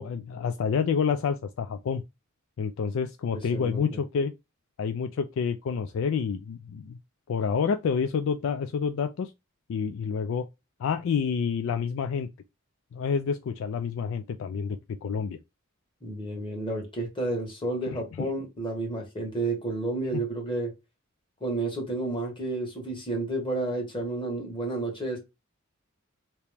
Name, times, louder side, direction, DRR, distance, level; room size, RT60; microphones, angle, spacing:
voice 1, 0.0-2.0 2.6-4.3 4.8-7.0 7.3-9.3 9.7-10.5 10.8-12.3 12.9-15.4 17.9-18.3, left 6 dB, 65° left, 0.3 m, -28 dB
voice 2, 3.5-3.9 16.0-20.7 21.4-25.2, right 2 dB, 25° left, 1.4 m, -31 dB
2.9 x 2.9 x 3.3 m
head